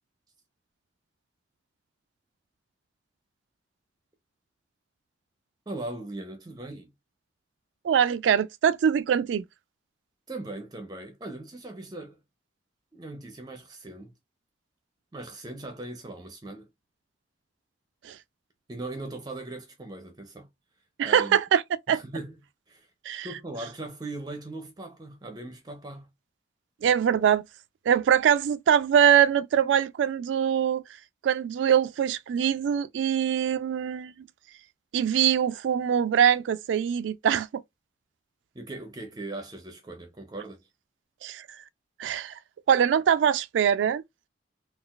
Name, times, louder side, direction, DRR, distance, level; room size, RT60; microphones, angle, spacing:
voice 1, 5.7-6.9 10.3-12.2 12.9-14.1 15.1-16.7 18.7-20.5 21.0-21.4 21.9-22.4 22.7-22.9 23.2-26.1 38.5-40.7, right 2 dB, 20° right, 0.5 m, -39 dB
voice 2, 7.8-9.4 18.0-18.2 21.0-21.6 21.9-22.0 23.1-23.3 26.8-27.4 27.9-30.8 31.2-34.1 34.9-37.6 41.2-41.5 42.0-42.4 42.7-44.0, right 8 dB, 75° right, 0.3 m, -23 dB
3.8 x 2.3 x 2.3 m
head